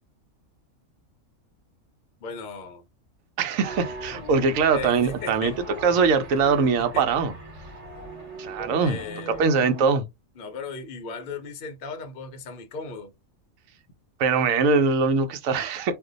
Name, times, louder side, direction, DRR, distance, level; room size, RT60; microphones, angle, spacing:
voice 1, 2.2-2.8 4.7-5.5 6.9-7.0 8.6-9.6 10.4-13.1, left 4 dB, 60° left, 0.6 m, -36 dB
voice 2, 3.4-5.5 5.8-7.3 8.4-9.0 9.4-10.0 14.2-16.0, right 5 dB, 75° right, 1.0 m, -22 dB
sound 1, 3.6-9.8, right 1 dB, 30° right, 1.0 m, -40 dB
2.5 x 2.2 x 3.7 m
omnidirectional pair, 1.4 m